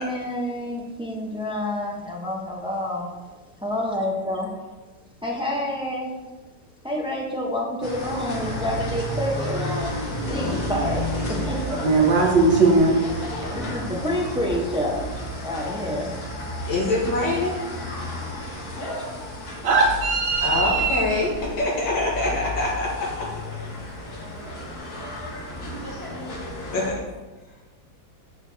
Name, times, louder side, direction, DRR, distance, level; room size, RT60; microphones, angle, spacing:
voice 1, 0.0-3.1 3.6-4.5 5.2-6.1 6.8-9.9 10.3-12.1 13.5-15.0 15.4-16.1, left 1 dB, 5° right, -2 dB, 0.4 m, -28 dB
sound 1, 7.8-26.9, left 1 dB, 55° left, 2.0 m, -32 dB
voice 2, 11.8-12.9 19.6-21.0, right 3 dB, 70° right, -1 dB, 2.0 m, -19 dB
voice 3, 16.7-17.6 20.4-23.3 26.7-27.0, left 2 dB, 80° left, -4 dB, 2.3 m, -24 dB
13.5 x 4.6 x 2.8 m, 1.2 s
omnidirectional pair, 2.0 m